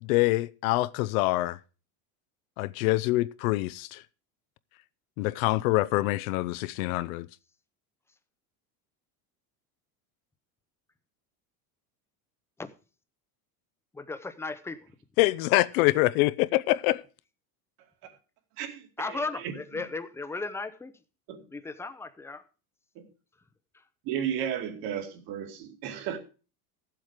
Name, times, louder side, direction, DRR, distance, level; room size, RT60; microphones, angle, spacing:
voice 1, 0.0-1.6 2.6-4.0 5.2-7.3 15.2-17.0, left 19 dB, 80° left, 0.7 m, -25 dB
voice 2, 13.9-14.9 19.0-20.9 21.5-22.4, left 3 dB, 5° left, 0.6 m, -36 dB
voice 3, 18.6-19.6 21.3-21.4 23.0-23.1 24.0-26.2, right 9 dB, 55° right, 2.5 m, -34 dB
14.5 x 7.8 x 5.0 m
cardioid pair, 150°, 41 cm